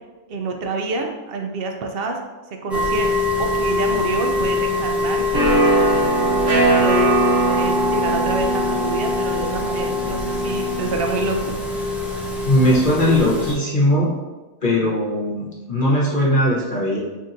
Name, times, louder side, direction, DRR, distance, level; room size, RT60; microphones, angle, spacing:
voice 1, 0.3-2.2 2.6-5.6 6.8-7.2 7.4-11.6, right 3 dB, 65° right, 3 dB, 0.6 m, -27 dB
sound 1, 2.7-13.5, left 2 dB, ahead, 0.3 m, -24 dB
sound 2, 5.3-10.9, right 2 dB, 80° right, 1.3 m, -20 dB
voice 2, 12.4-14.1 14.6-17.0, left 1 dB, 45° left, -5 dB, 1.0 m, -19 dB
5.8 x 2.8 x 2.5 m, 1.2 s
omnidirectional pair, 1.3 m